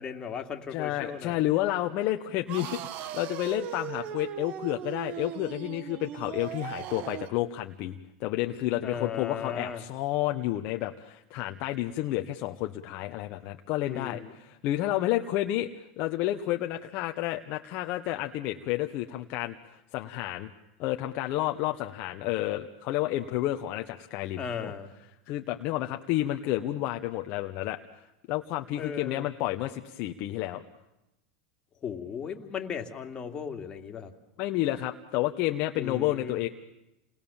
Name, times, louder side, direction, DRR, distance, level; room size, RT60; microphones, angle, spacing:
voice 1, 0.0-1.4 8.8-9.8 13.8-14.3 24.4-24.9 28.8-29.3 31.8-34.1 35.7-36.4, left 7 dB, 30° left, 4 dB, 2.6 m, -36 dB
voice 2, 0.7-20.5 20.8-24.7 25.3-30.6 34.4-36.5, left 15 dB, 55° left, 5 dB, 1.2 m, -30 dB
sound 1, 2.5-7.4, right 11 dB, 50° right, 1.1 m, -38 dB
29.0 x 20.5 x 7.3 m, 0.94 s
supercardioid pair, 115°, 3 cm